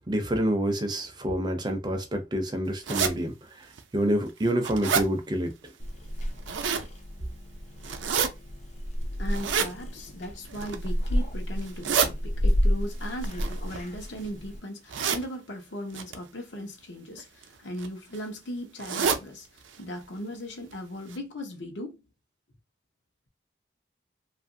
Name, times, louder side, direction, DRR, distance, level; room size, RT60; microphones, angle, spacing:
voice 1, 0.1-3.7 3.9-5.5, right 1 dB, 25° right, 0.4 m, -27 dB
sound 1, 2.8-3.1 3.8-3.9 4.3-5.1 6.2-6.9 7.8-8.3 9.3-9.7 10.5-10.9 11.6-12.1 13.2-14.2 14.9-15.2 15.9-16.2 17.2-17.4 17.8-17.9 18.1-18.2 18.8-19.2 19.6-19.8 20.0-20.1 20.7-20.8 21.1-21.2, right 6 dB, 85° right, 0.5 m, -28 dB
Purr / Meow, 5.8-14.6, equal, 35° left, 0.4 m, -31 dB
voice 2, 9.2-22.0, equal, 75° left, 0.8 m, -38 dB
2.8 x 2.5 x 2.6 m
head